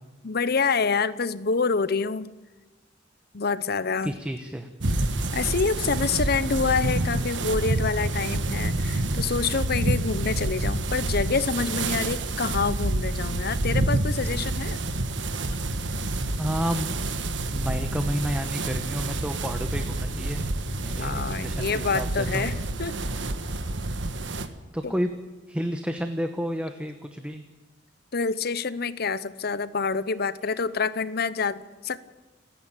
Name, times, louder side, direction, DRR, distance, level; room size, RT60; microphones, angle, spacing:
voice 1, 0.2-2.3 3.3-4.1 5.3-14.8 21.0-23.0 24.8-24.9 28.1-32.1, left 4 dB, 55° left, 16 dB, 0.8 m, -27 dB
voice 2, 4.0-4.7 16.4-16.9 17.5-20.4 20.8-22.5 24.2-25.1 25.5-27.4 30.4-30.5, equal, 5° right, 6 dB, 1.1 m, -31 dB
sound 1, 4.8-24.5, right 2 dB, 70° right, 1.4 m, -28 dB
29.0 x 10.5 x 9.0 m, 1.1 s
head